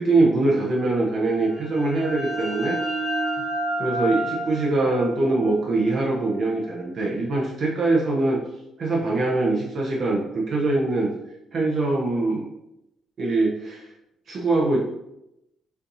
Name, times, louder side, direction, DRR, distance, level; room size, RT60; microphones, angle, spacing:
voice 1, 0.0-2.8 3.8-8.4 8.8-11.1 11.5-12.4 13.2-13.9 14.3-14.8, right 2 dB, 55° right, -3 dB, 0.7 m, -23 dB
sound 1, 1.4-6.9, right 1 dB, 30° right, 1.2 m, -30 dB
4.3 x 2.7 x 2.6 m, 0.87 s
cardioid pair, 90°, 0 cm